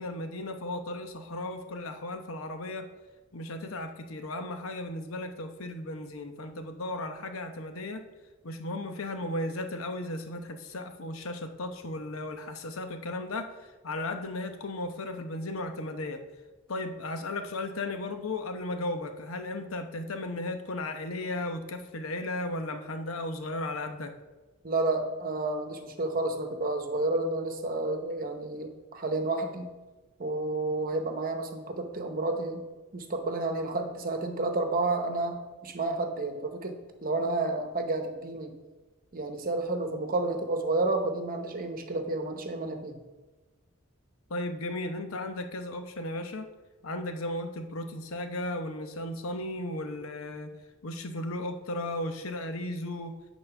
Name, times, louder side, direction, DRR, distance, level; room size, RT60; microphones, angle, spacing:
voice 1, 0.0-2.8 3.3-8.1 8.4-16.2 16.7-24.1 44.3-46.5 46.8-50.5 50.8-53.2, left 2 dB, 80° left, 6 dB, 0.9 m, -35 dB
voice 2, 24.6-29.7 30.2-32.7 32.9-38.6 39.1-43.0, right 2 dB, 45° right, 5 dB, 1.0 m, -30 dB
8.9 x 4.1 x 5.8 m, 1.2 s
head